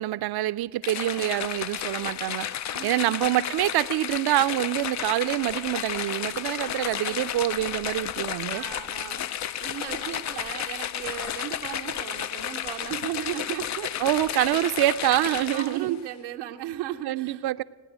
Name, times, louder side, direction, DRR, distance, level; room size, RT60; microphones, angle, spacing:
voice 1, 0.0-2.5 2.8-8.6 14.0-16.0 17.0-17.6, right 15 dB, 50° right, 0.6 m, -26 dB
sound 1, 0.8-15.9, left 10 dB, 35° left, 0.4 m, -32 dB
voice 2, 2.7-3.2 8.5-9.3 9.6-14.1 15.2-17.6, right 12 dB, 85° right, 0.8 m, -36 dB
17.0 x 9.8 x 8.0 m
hypercardioid pair, 55°, 50 cm